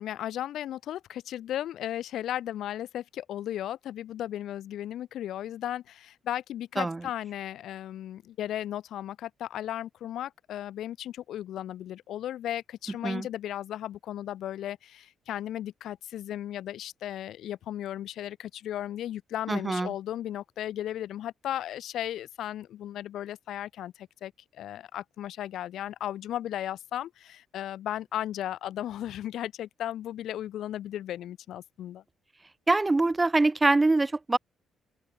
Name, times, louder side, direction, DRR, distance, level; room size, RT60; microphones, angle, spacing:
voice 1, 0.0-32.0, left 12 dB, 75° left, 0.8 m, -35 dB
voice 2, 19.5-19.9 32.7-34.4, right 2 dB, 20° right, 0.7 m, -24 dB
open air
cardioid pair, 90°, 0 cm